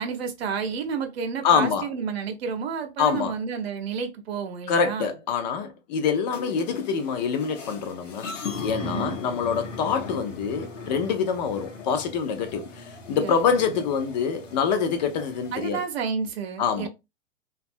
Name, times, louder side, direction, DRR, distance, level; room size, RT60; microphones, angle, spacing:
voice 1, 0.0-5.1 8.8-9.1 13.2-13.8 15.5-16.9, right 6 dB, 55° right, 0.7 m, -31 dB
voice 2, 1.4-1.9 3.0-3.3 4.7-8.3 8.6-15.8 16.6-16.9, left 6 dB, 35° left, 0.4 m, -25 dB
sound 1, 6.3-15.7, left 4 dB, 85° left, 0.8 m, -38 dB
2.6 x 2.3 x 2.5 m
figure-of-eight pair, 105°, 37 cm